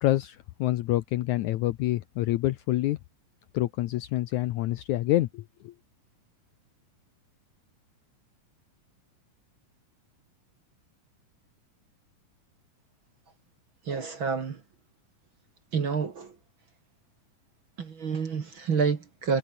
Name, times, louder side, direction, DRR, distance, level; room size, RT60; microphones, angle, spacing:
voice 1, 0.0-3.0 3.5-5.7, left 15 dB, 75° left, 1.8 m, -27 dB
voice 2, 13.9-14.6 15.7-16.4 17.8-19.4, right 5 dB, 45° right, 2.1 m, -28 dB
omnidirectional pair, 4.1 m